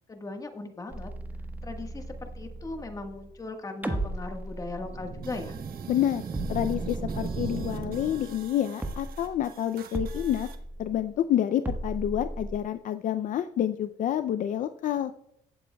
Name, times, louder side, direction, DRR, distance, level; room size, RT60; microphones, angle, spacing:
voice 1, 0.1-1.1 1.6-5.6, left 2 dB, 20° left, 5 dB, 1.4 m, -38 dB
sound 1, 0.9-3.5 3.8-5.9 6.3-8.5 8.8-9.5 9.9-11.2 11.7-12.6, right 1 dB, 10° right, 1.3 m, -37 dB
sound 2, 4.8-8.6, right 6 dB, 35° right, 0.7 m, -37 dB
sound 3, 5.2-10.6, right 8 dB, 60° right, 1.2 m, -51 dB
voice 2, 5.9-6.2 6.5-10.5 10.8-15.1, left 11 dB, 50° left, 10 dB, 0.5 m, -28 dB
16.0 x 7.5 x 2.3 m, 0.79 s
cardioid pair, 110°, 17 cm